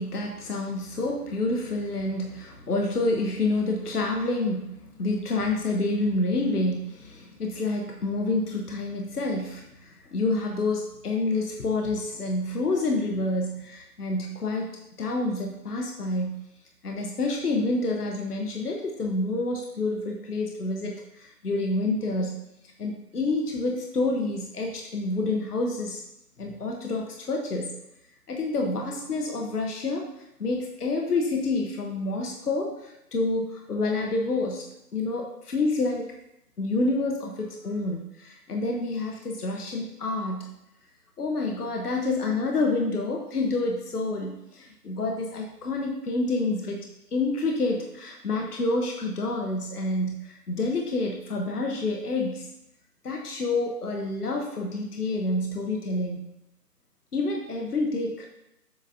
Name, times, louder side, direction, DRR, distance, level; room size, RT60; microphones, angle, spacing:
voice 1, 0.0-14.7 15.0-16.4 16.8-22.4 22.8-26.0 26.4-27.7 28.3-30.1 30.4-36.1 36.6-40.5 41.2-52.5 53.0-56.2 57.1-58.3, left 2 dB, 65° left, 2 dB, 1.2 m, -28 dB
7.5 x 7.0 x 2.7 m, 0.85 s
figure-of-eight pair, 155°, 49 cm